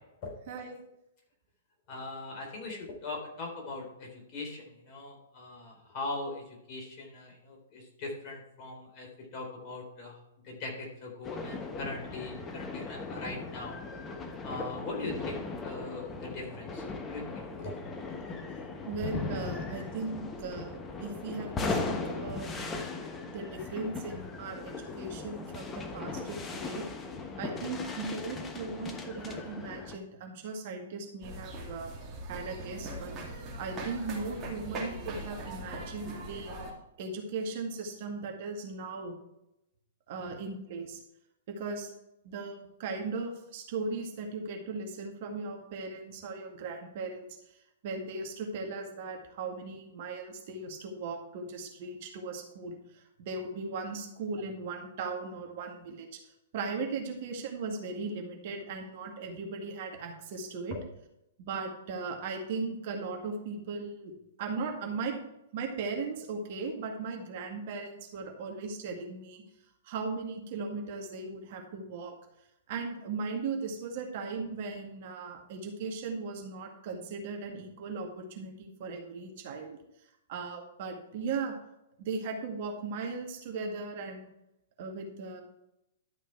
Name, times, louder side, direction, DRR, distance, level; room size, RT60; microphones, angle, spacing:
voice 1, 0.5-0.8 18.9-22.6 23.3-26.9 27.4-31.9 32.3-36.5 37.0-39.1 40.1-41.0 41.5-41.9 42.2-47.4 47.8-56.2 56.5-60.8 61.5-64.1 64.4-65.2 65.5-69.4 69.8-72.1 72.7-79.8 80.3-81.6 82.0-84.3 84.8-85.4, right 4 dB, 50° right, 2 dB, 2.0 m, -38 dB
voice 2, 1.9-10.2 10.4-13.8 14.4-17.7 40.2-40.3 60.7-60.8, left 2 dB, 35° left, -1 dB, 3.9 m, -40 dB
sound 1, 11.2-30.0, left 3 dB, 20° left, 1.2 m, -38 dB
sound 2, 31.2-36.7, right 1 dB, 25° right, 2.8 m, -40 dB
12.0 x 5.7 x 4.7 m, 0.85 s
figure-of-eight pair, 110°, 0 cm